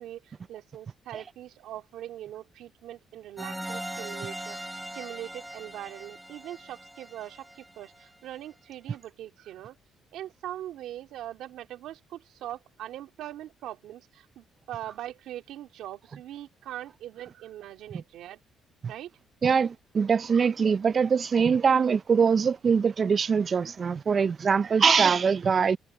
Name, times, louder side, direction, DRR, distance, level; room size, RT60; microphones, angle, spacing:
voice 1, 0.0-9.8 10.1-18.4 18.9-19.1, right 12 dB, 80° right, 2.8 m, -41 dB
sound 1, 3.4-8.0, right 1 dB, 5° right, 4.0 m, -40 dB
voice 2, 19.4-25.8, right 6 dB, 45° right, 0.5 m, -23 dB
cardioid pair, 85°, 0 cm